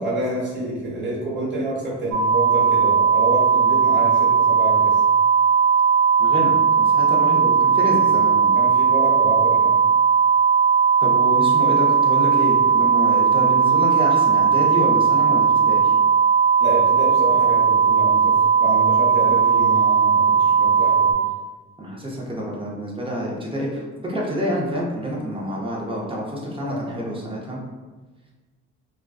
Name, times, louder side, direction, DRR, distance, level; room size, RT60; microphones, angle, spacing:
voice 1, 0.0-5.0 8.5-9.8 16.6-21.1 26.6-27.0, right 1 dB, 35° right, -7 dB, 1.2 m, -28 dB
sound 1, 2.1-21.1, right 6 dB, 60° right, 0.6 m, -17 dB
voice 2, 6.2-8.6 11.0-15.9 21.8-27.6, equal, 15° right, -3 dB, 0.6 m, -27 dB
2.4 x 2.2 x 2.3 m, 1.3 s
cardioid pair, 90°, 30 cm